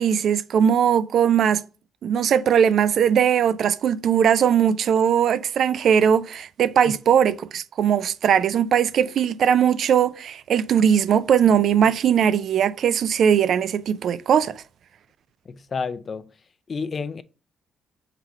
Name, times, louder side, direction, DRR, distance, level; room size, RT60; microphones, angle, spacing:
voice 1, 0.0-1.6 2.0-14.6, right 8 dB, 65° right, 0.3 m, -19 dB
voice 2, 15.5-16.3 16.7-17.2, left 5 dB, 40° left, 0.4 m, -30 dB
3.9 x 2.9 x 4.5 m
cardioid pair, 90°, 0 cm